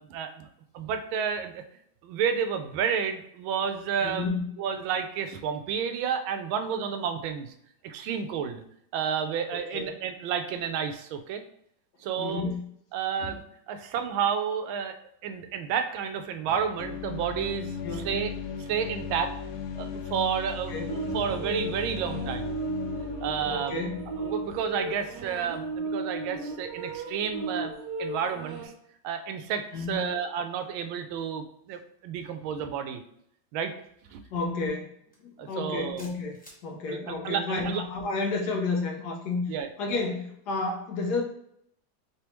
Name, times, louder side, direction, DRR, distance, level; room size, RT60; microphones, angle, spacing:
voice 1, 0.1-0.5 0.7-1.6 2.0-4.3 4.6-7.5 7.8-8.6 8.9-11.4 12.0-12.5 12.9-14.9 15.2-18.3 18.6-19.3 19.8-22.6 23.2-23.8 24.2-27.7 28.0-28.7 29.0-33.0 33.5-33.8 34.1-34.2 35.4-36.0 36.9-37.8 39.5-39.7, right 7 dB, 85° right, 8 dB, 1.4 m, -31 dB
voice 2, 4.0-4.5 9.7-10.0 12.2-12.7 17.8-18.1 20.7-20.9 23.5-24.0 29.7-30.1 34.3-35.0 35.2-41.2, left 3 dB, 70° left, 2 dB, 1.1 m, -31 dB
sound 1, 16.8-25.6, left 6 dB, 85° left, 1.4 m, -37 dB
sound 2, 20.9-28.7, right 3 dB, 65° right, 1.2 m, -35 dB
sound 3, 35.1-35.3 36.0-36.6, equal, 5° left, 0.7 m, -50 dB
4.7 x 3.4 x 2.9 m, 0.71 s
omnidirectional pair, 2.1 m